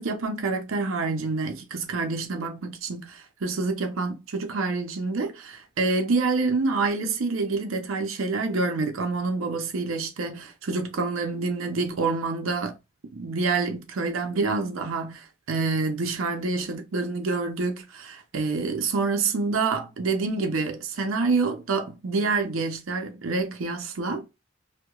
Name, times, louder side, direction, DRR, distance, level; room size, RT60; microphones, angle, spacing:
voice 1, 0.0-12.8 13.1-24.3, right 3 dB, 90° right, 0.6 m, -27 dB
2.8 x 2.1 x 2.3 m
head